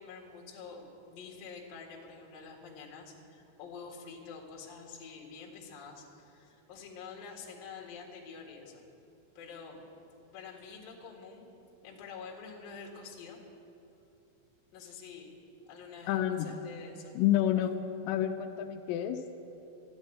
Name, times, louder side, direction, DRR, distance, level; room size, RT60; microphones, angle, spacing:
voice 1, 0.0-8.8 9.3-9.8 10.2-11.5 11.8-13.4 14.7-15.3 15.7-17.1, left 5 dB, 55° left, -1 dB, 3.0 m, -47 dB
voice 2, 16.1-16.5 17.2-17.8 18.1-19.2, left 12 dB, 85° left, 5 dB, 3.3 m, -29 dB
13.5 x 10.0 x 9.7 m, 2.9 s
omnidirectional pair, 6.0 m